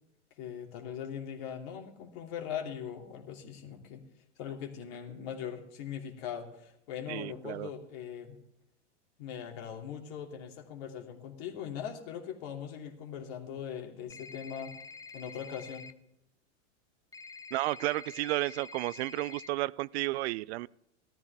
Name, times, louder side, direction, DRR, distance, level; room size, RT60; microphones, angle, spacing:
voice 1, 0.4-4.0 4.4-8.4 9.2-14.7 15.1-15.9, left 8 dB, 55° left, 2 dB, 2.9 m, -40 dB
voice 2, 7.1-7.7 17.5-20.7, right 18 dB, 65° right, 22 dB, 0.5 m, -32 dB
sound 1, 14.1-15.9 17.1-19.5, left 4 dB, 10° left, 0.5 m, -47 dB
16.0 x 13.5 x 3.6 m, 0.77 s
hypercardioid pair, 115°, 36 cm